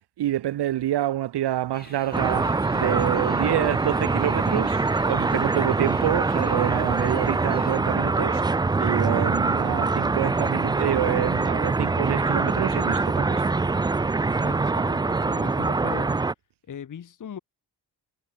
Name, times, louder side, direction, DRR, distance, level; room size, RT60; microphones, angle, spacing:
voice 1, 0.2-8.5 8.8-13.5, right 13 dB, 70° right, 1.1 m, -27 dB
sound 1, 1.7-7.8, left 3 dB, 20° left, 6.9 m, -47 dB
sound 2, 2.1-16.3, right 3 dB, 10° right, 0.3 m, -24 dB
voice 2, 14.4-16.1 16.7-17.4, left 8 dB, 45° left, 1.7 m, -39 dB
wide cardioid pair, 135°, 42 cm